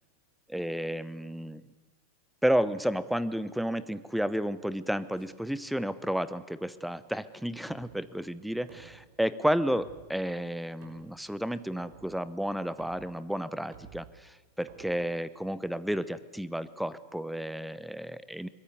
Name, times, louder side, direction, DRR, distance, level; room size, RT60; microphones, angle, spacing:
voice 1, 0.5-1.6 2.4-18.5, equal, ahead, 16 dB, 0.8 m, -32 dB
sound 1, 5.1-15.8, right 7 dB, 40° right, 5.9 m, -56 dB
23.0 x 20.0 x 9.8 m, 1.2 s
figure-of-eight pair, 90°, 0 cm